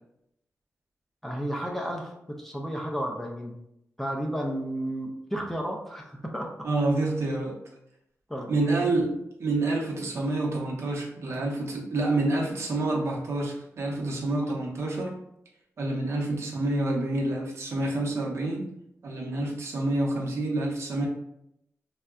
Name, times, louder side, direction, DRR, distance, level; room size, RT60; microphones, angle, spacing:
voice 1, 1.2-3.5 4.0-6.5 8.3-8.9, equal, 5° left, 0 dB, 0.3 m, -32 dB
voice 2, 6.6-7.6 8.5-9.1 9.4-15.1 15.8-18.7 19.0-21.1, right 2 dB, 60° right, -2 dB, 0.7 m, -28 dB
3.6 x 2.1 x 2.3 m, 0.78 s
wide cardioid pair, 175°, 5 cm